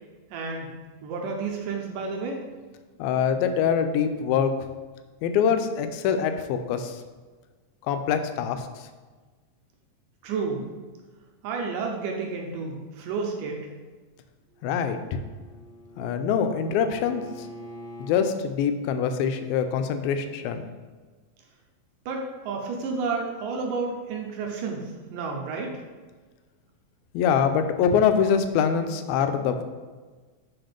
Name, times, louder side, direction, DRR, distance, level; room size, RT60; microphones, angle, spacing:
voice 1, 0.3-0.7 1.0-2.4 10.2-10.6 11.4-13.7 22.1-25.8, right 4 dB, 75° right, 1 dB, 2.2 m, -31 dB
voice 2, 3.0-4.5 5.2-7.0 7.9-8.7 14.6-15.2 16.0-17.5 18.0-20.6 27.1-29.6, left 7 dB, 85° left, 8 dB, 2.4 m, -24 dB
Bowed string instrument, 14.5-18.3, equal, 5° left, 1.2 m, -44 dB
6.0 x 5.0 x 5.1 m, 1.4 s
omnidirectional pair, 4.2 m